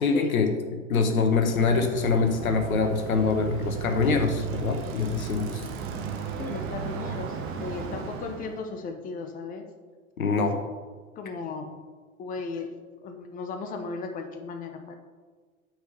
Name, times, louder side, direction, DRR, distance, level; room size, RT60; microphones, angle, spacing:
voice 1, 0.0-5.7 10.2-10.6, left 4 dB, 75° left, 6 dB, 1.2 m, -25 dB
Bicycle, 1.1-8.6, right 6 dB, 30° right, 1.0 m, -35 dB
voice 2, 6.4-9.7 11.2-11.7 12.2-12.7 13.0-15.0, left 4 dB, 20° left, 5 dB, 0.8 m, -36 dB
6.1 x 5.1 x 6.6 m, 1.5 s
figure-of-eight pair, 95°, 42 cm